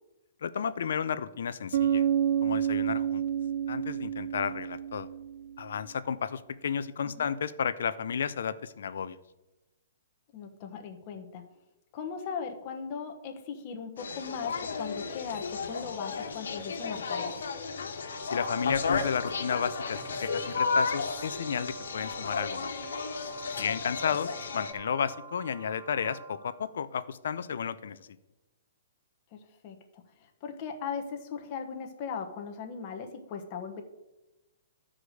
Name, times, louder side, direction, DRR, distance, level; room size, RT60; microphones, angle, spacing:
voice 1, 0.4-2.0 2.4-3.2 3.7-5.1 5.6-9.2 18.2-22.7 23.5-28.1, left 7 dB, 65° left, 13 dB, 0.6 m, -32 dB
Bass guitar, 1.7-5.6, right 9 dB, 50° right, 0.4 m, -29 dB
voice 2, 10.3-11.4 11.9-17.5 29.3-33.8, left 6 dB, 25° left, 4 dB, 1.1 m, -38 dB
sound 1, 14.0-24.7, left 5 dB, 80° left, 1.4 m, -34 dB
sound 2, 17.9-26.7, right 2 dB, 20° right, 1.7 m, -43 dB
12.5 x 5.0 x 6.4 m, 1.0 s
hypercardioid pair, 180°, 0 cm